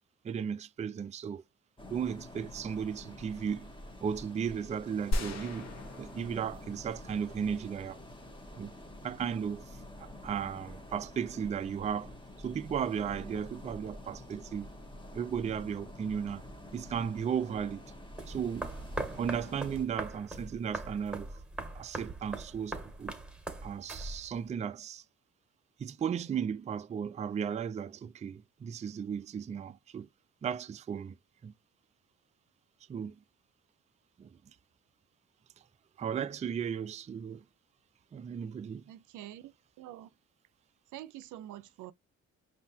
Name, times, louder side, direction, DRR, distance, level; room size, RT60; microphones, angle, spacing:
voice 1, 0.2-1.4 1.9-3.7 4.0-8.0 8.6-8.7 9.0-9.8 10.2-12.1 12.4-14.7 15.1-16.4 16.7-17.9 18.3-18.7 19.1-21.4 21.7-23.2 23.6-25.0 25.8-30.1 30.4-31.2 31.4-31.5 32.9-33.2 34.2-34.4 36.0-37.4 38.1-38.8, right 7 dB, 25° right, 0.3 m, -35 dB
sound 1, 1.8-19.9, left 1 dB, 15° left, 1.2 m, -48 dB
sound 2, 5.1-7.0 7.4-7.5, equal, 60° left, 1.2 m, -36 dB
sound 3, 18.2-24.5, right 2 dB, 5° right, 1.7 m, -41 dB
voice 2, 38.9-40.1 40.9-41.9, right 13 dB, 80° right, 0.5 m, -46 dB
5.4 x 2.8 x 2.7 m
cardioid pair, 90°, 30 cm